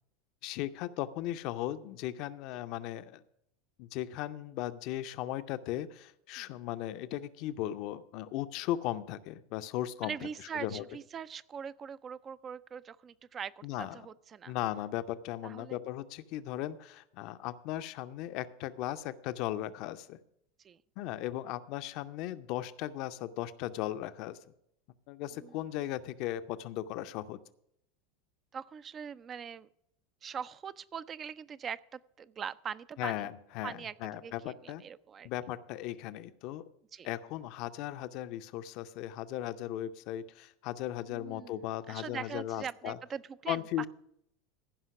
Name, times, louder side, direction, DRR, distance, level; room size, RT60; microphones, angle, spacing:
voice 1, 0.4-3.2 3.8-10.3 10.5-10.8 13.6-14.1 14.5-20.2 21.0-24.4 25.1-27.4 33.0-34.8 35.2-36.6 37.0-43.0 43.5-43.9, left 13 dB, 50° left, 13 dB, 0.5 m, -37 dB
voice 2, 10.0-14.6 15.4-15.8 20.6-20.8 25.4-25.6 28.5-29.7 30.2-33.3 33.6-35.3 36.9-37.1 41.1-43.9, right 7 dB, 30° right, 17 dB, 0.3 m, -42 dB
15.0 x 5.6 x 5.9 m, 0.76 s
figure-of-eight pair, 80°, 0 cm